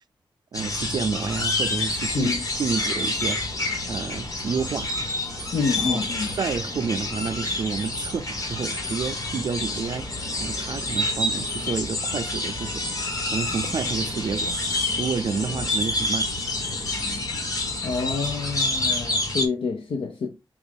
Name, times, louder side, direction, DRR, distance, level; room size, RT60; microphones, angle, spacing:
sound 1, 0.5-19.4, left 2 dB, 40° left, 1.2 m, -28 dB
voice 1, 0.5-3.4 3.9-4.9 5.8-6.0 6.4-10.1 10.4-12.8 13.3-14.5 15.0-16.3, right 5 dB, 50° right, 0.4 m, -29 dB
voice 2, 5.5-6.3 17.8-20.3, left 4 dB, 75° left, 0.6 m, -27 dB
6.0 x 2.4 x 3.3 m
wide cardioid pair, 175°, 9 cm